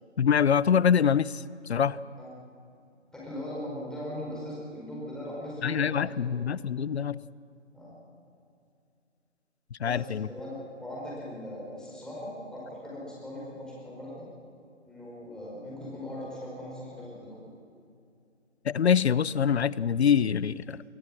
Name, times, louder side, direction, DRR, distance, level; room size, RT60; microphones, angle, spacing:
voice 1, 0.2-2.0 5.6-7.2 9.7-10.3 18.6-20.8, left 7 dB, 60° left, 20 dB, 0.6 m, -25 dB
voice 2, 3.1-6.4 7.7-7.9 9.8-14.3 14.8-17.5, left 1 dB, ahead, -6 dB, 4.7 m, -40 dB
23.0 x 17.0 x 7.4 m, 2.5 s
figure-of-eight pair, 145°, 36 cm